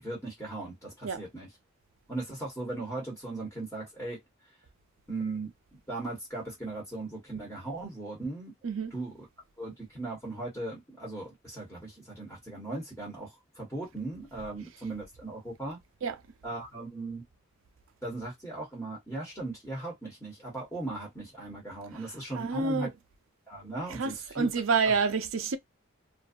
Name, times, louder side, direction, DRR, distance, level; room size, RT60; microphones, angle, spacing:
voice 1, 0.0-1.5 2.1-4.2 5.1-5.5 5.9-8.5 8.9-9.3 9.6-15.8 16.4-17.2 18.0-22.9 23.5-24.5 24.8-24.9, right 2 dB, 10° left, 1.2 m, -38 dB
voice 2, 22.3-22.9 24.0-25.6, right 5 dB, 70° right, 0.5 m, -28 dB
2.5 x 2.3 x 2.5 m
head